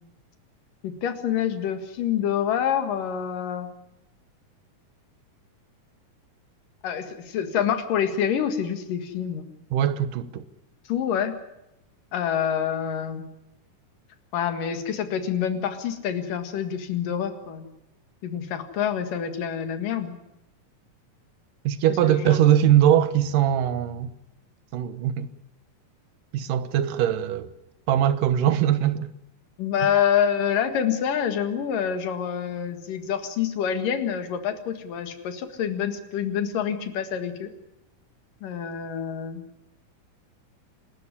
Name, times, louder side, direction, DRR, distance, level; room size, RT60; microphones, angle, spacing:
voice 1, 0.8-3.7 6.8-9.5 10.9-11.3 12.1-13.2 14.3-17.7 18.2-20.2 22.1-22.5 29.6-37.5 38.4-39.4, left 8 dB, 85° left, 3.5 m, -27 dB
voice 2, 9.7-10.4 21.6-24.1 24.7-25.3 26.3-27.5 27.9-29.1, right 11 dB, 80° right, 2.7 m, -21 dB
27.5 x 13.0 x 9.9 m
omnidirectional pair, 3.7 m